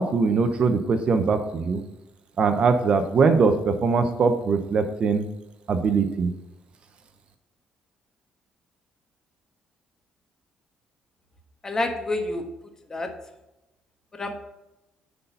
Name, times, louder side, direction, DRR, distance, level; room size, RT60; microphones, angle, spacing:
voice 1, 0.0-1.8 2.4-5.3 5.7-6.3, right 4 dB, 45° right, 7 dB, 0.8 m, -21 dB
voice 2, 11.6-12.4 12.9-13.1 14.1-14.4, left 2 dB, 25° left, 4 dB, 1.4 m, -28 dB
9.9 x 4.1 x 5.5 m, 0.94 s
cardioid pair, 120°, 2 cm